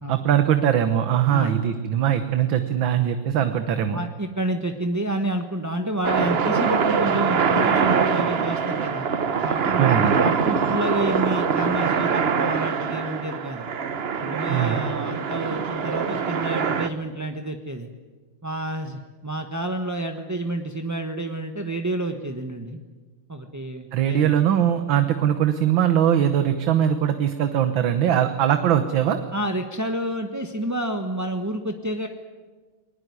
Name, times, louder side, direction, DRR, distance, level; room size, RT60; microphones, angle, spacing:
voice 1, 0.1-4.0 9.8-10.2 14.5-14.8 23.9-29.2, right 10 dB, 70° right, 9 dB, 1.8 m, -21 dB
voice 2, 3.9-9.0 9.4-13.7 14.2-17.9 18.4-22.8 23.3-24.3 29.3-32.1, right 1 dB, 15° right, 5 dB, 0.8 m, -29 dB
sound 1, 6.0-16.9, right 6 dB, 45° right, 0.8 m, -23 dB
21.0 x 20.5 x 9.6 m, 1.4 s
omnidirectional pair, 2.3 m